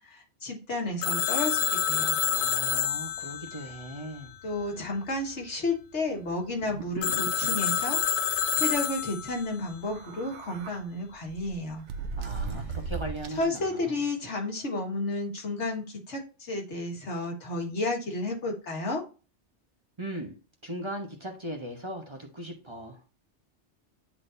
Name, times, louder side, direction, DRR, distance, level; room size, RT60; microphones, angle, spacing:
voice 1, 0.1-2.2 4.4-8.0 8.5-11.8 13.4-19.0, left 2 dB, 80° left, 1.9 m, -32 dB
Telephone, 1.0-4.7 7.0-9.6, left 9 dB, 55° left, 0.7 m, -28 dB
voice 2, 2.2-4.3 12.2-14.0 20.0-20.3 20.6-23.0, right 1 dB, 25° right, 1.0 m, -38 dB
sound 1, 6.6-7.6 8.0-8.1 8.3-8.6 9.7-10.8 11.3-13.6, right 4 dB, 80° right, 1.0 m, -37 dB
9.9 x 3.9 x 2.6 m
omnidirectional pair, 1.2 m